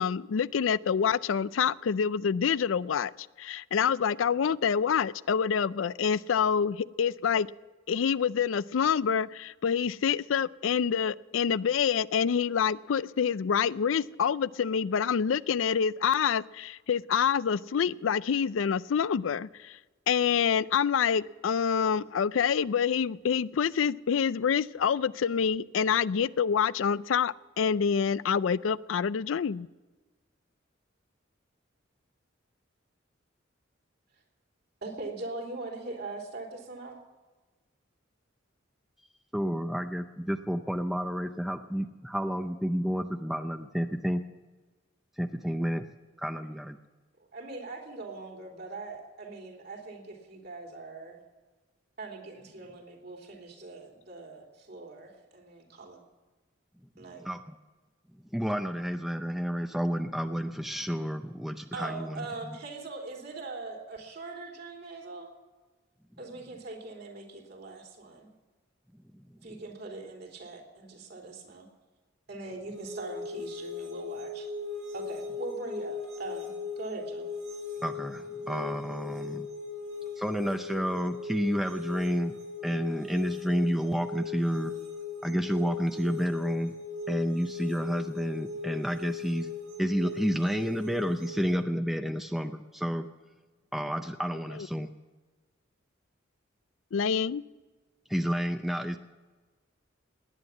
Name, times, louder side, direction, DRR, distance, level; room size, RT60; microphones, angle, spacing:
voice 1, 0.0-7.5 7.9-19.8 20.1-29.7 96.9-97.4, left 7 dB, 90° left, 18 dB, 0.4 m, -27 dB
voice 2, 34.8-37.0 47.3-51.2 52.0-56.0 57.0-57.3 61.7-65.3 66.2-68.3 69.4-71.7 72.3-74.5 74.9-77.3, right 3 dB, 55° right, 1 dB, 3.3 m, -41 dB
voice 3, 39.3-44.2 45.2-45.9 46.2-46.8 57.2-57.5 58.3-62.6 77.8-79.5 80.2-82.4 82.6-84.8 85.2-86.7 87.1-89.5 89.8-93.1 93.7-94.9 98.1-99.0, equal, ahead, 7 dB, 0.5 m, -30 dB
sound 1, 72.7-91.5, left 4 dB, 90° right, 6.9 m, -38 dB
19.0 x 9.7 x 7.3 m, 1.3 s
head